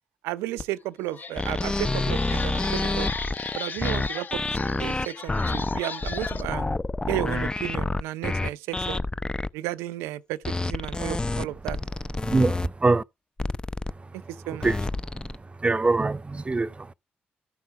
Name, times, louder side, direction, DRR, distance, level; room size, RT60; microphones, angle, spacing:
voice 1, 0.2-3.1 3.5-6.6 7.1-9.0 9.5-11.8 14.3-14.7, right 15 dB, 85° right, 0.5 m, -33 dB
sound 1, 0.6-0.7 1.1-6.4, left 5 dB, 45° left, 1.2 m, -36 dB
sound 2, 1.4-9.5 10.4-12.7 13.4-13.9 14.6-15.4, left 2 dB, 20° left, 0.6 m, -28 dB
voice 2, 12.2-13.0 13.9-14.2 14.6-14.8 15.1-15.3 15.6-16.9, right 3 dB, 30° right, 0.7 m, -24 dB
13.5 x 5.8 x 4.6 m
hypercardioid pair, 45°, 4 cm